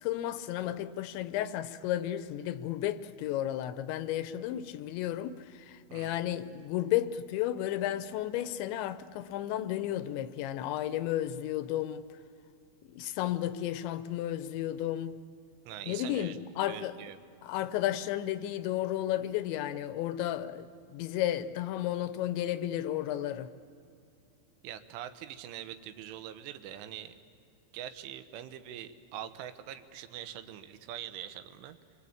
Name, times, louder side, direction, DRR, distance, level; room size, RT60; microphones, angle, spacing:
voice 1, 0.0-12.0 12.9-15.2 15.9-17.0 17.4-23.5, left 12 dB, 80° left, 3.0 m, -33 dB
voice 2, 15.7-16.4 16.7-17.2 24.6-27.1 27.7-31.8, right 11 dB, 90° right, 3.6 m, -43 dB
28.0 x 23.0 x 8.7 m
omnidirectional pair, 5.4 m